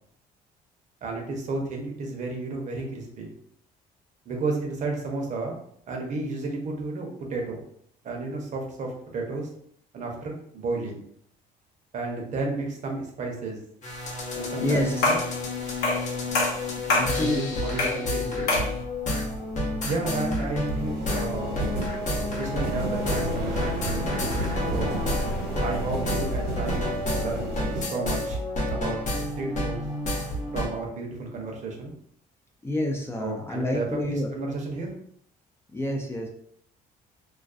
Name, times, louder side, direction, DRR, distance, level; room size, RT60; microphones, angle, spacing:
voice 1, 1.0-3.3 4.3-5.6 5.9-7.6 8.0-9.5 9.9-11.0 11.9-13.6 14.3-15.2 17.1-18.7 19.8-21.6 22.3-24.1 24.7-25.0 25.6-28.4 28.7-29.8 30.5-31.9 33.2-34.9, right 3 dB, 45° right, 1 dB, 0.7 m, -32 dB
sound 1, 13.8-30.7, left 2 dB, 45° left, 0.7 m, -30 dB
sound 2, 14.0-14.4 14.8-27.8, right 1 dB, 75° right, 0.8 m, -33 dB
voice 2, 14.6-15.1 16.9-17.6 32.6-34.3 35.7-36.3, left 1 dB, 15° left, 0 dB, 0.3 m, -28 dB
sound 3, 15.0-15.3 15.8-16.1 16.3-17.2 17.8-18.0 18.5-18.7, left 2 dB, 90° left, 0.9 m, -24 dB
2.3 x 2.2 x 2.4 m, 0.67 s
cardioid pair, 110°, 17 cm